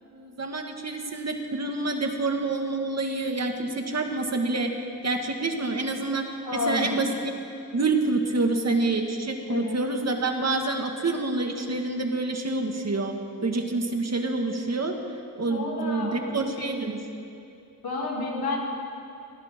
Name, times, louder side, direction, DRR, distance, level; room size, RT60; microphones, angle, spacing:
voice 1, 0.1-4.7 5.0-6.3 6.7-7.3 7.7-13.1 13.4-15.0 15.4-17.0, right 3 dB, 45° right, 3 dB, 1.9 m, -27 dB
voice 2, 6.4-7.0 9.5-9.8 15.4-16.7 17.8-18.6, left 3 dB, 85° left, -3 dB, 3.2 m, -31 dB
20.5 x 17.0 x 3.7 m, 2.7 s
cardioid pair, 55°, 36 cm